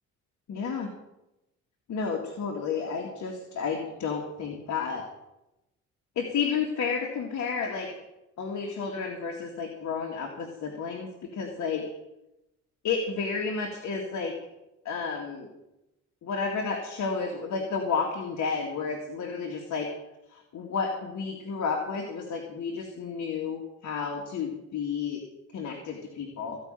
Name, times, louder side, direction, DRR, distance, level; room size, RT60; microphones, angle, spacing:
voice 1, 0.5-0.9 1.9-5.0 6.2-7.9 8.4-11.8 12.8-14.3 14.8-15.5 16.2-19.9 20.3-25.2 25.5-26.6, left 5 dB, 65° left, 1 dB, 2.3 m, -31 dB
16.0 x 5.5 x 9.0 m, 0.92 s
cardioid pair, 90°, 30 cm